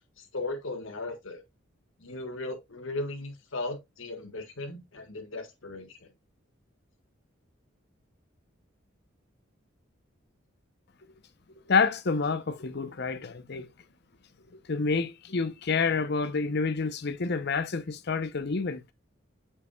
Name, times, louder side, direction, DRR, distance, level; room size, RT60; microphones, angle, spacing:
voice 1, 0.2-1.4 2.0-6.1, left 2 dB, 80° left, 1.7 m, -37 dB
voice 2, 11.7-13.7 14.7-18.8, left 4 dB, 55° left, 0.7 m, -28 dB
8.2 x 5.8 x 2.3 m
head